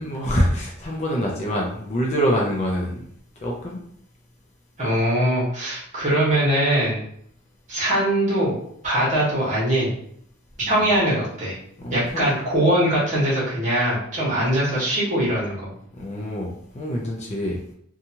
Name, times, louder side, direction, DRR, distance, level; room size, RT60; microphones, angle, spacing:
voice 1, 0.0-3.0 3.4-3.9 10.7-10.9 11.8-12.2 15.9-17.6, equal, 30° left, -2 dB, 0.4 m, -25 dB
voice 2, 4.8-7.0 7.7-8.5 8.8-9.9 10.6-11.6 11.9-15.7, right 1 dB, 35° right, -6 dB, 1.2 m, -21 dB
2.8 x 2.3 x 2.8 m, 0.67 s
head